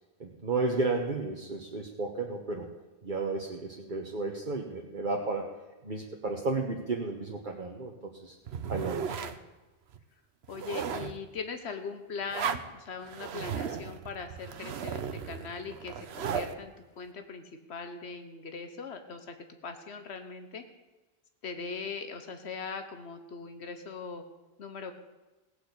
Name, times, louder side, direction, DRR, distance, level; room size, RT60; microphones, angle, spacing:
voice 1, 0.2-2.7 3.0-5.5 5.8-8.3 8.7-9.2, right 3 dB, 50° right, 0 dB, 1.3 m, -33 dB
sound 1, 8.5-9.4 9.9-10.0 10.4-11.2 12.3-12.7 13.0-16.5, right 7 dB, 75° right, 1.0 m, -35 dB
voice 2, 10.5-17.4 17.7-20.6 21.4-24.2 24.6-24.9, left 5 dB, 90° left, 7 dB, 1.3 m, -40 dB
17.5 x 6.3 x 8.3 m, 1.2 s
omnidirectional pair, 1.1 m